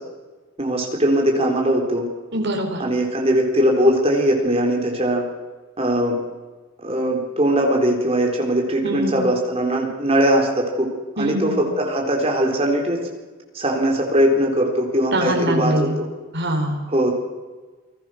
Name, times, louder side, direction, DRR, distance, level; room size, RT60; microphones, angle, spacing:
voice 1, 0.6-2.1 2.8-5.3 5.8-6.2 6.8-10.9 11.2-13.1 13.5-16.1 16.9-17.1, right 1 dB, 25° right, 0 dB, 4.1 m, -20 dB
voice 2, 2.3-2.8 8.8-9.2 11.2-11.6 15.1-16.0 16.3-16.9, right 1 dB, 50° right, 2 dB, 4.5 m, -23 dB
29.0 x 20.5 x 6.5 m, 1.3 s
head